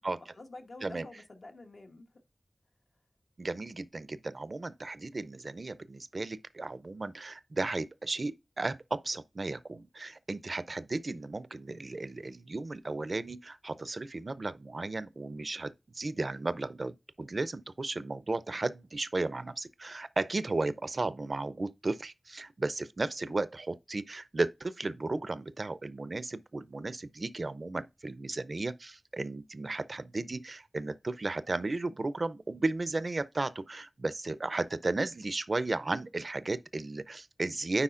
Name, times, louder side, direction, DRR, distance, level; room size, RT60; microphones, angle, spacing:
voice 1, 0.1-2.2 23.3-23.4, left 2 dB, 75° left, 1.1 m, -49 dB
voice 2, 3.4-37.8, right 2 dB, 55° right, 0.5 m, -34 dB
9.8 x 4.0 x 2.5 m
wide cardioid pair, 65°, 0 cm